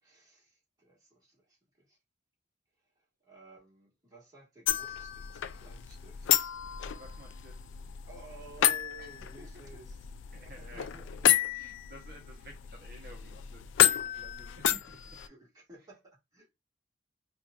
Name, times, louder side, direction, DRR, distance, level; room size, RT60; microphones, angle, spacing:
voice 1, 0.0-2.0 3.0-6.4 8.1-10.1 10.4-11.1 15.3-16.5, right 3 dB, 20° right, 1.6 m, -54 dB
sound 1, 4.7-15.3, left 11 dB, 85° left, 0.3 m, -31 dB
voice 2, 6.9-7.6 9.0-9.5 10.3-10.9 11.5-15.2, equal, 55° right, 0.8 m, -53 dB
4.4 x 2.4 x 2.4 m
head